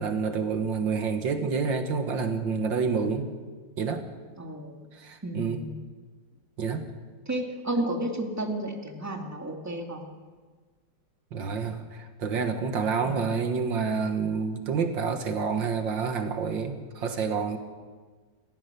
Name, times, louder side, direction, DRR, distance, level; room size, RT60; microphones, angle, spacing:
voice 1, 0.0-3.3 3.8-4.0 4.9-5.6 6.6-6.9 11.3-17.6, right 5 dB, 75° right, 6 dB, 2.2 m, -28 dB
voice 2, 4.4-4.9 5.2-5.7 7.3-10.1 13.0-13.2, right 1 dB, 10° right, 2 dB, 2.3 m, -32 dB
29.0 x 15.0 x 6.8 m, 1.5 s
omnidirectional pair, 2.0 m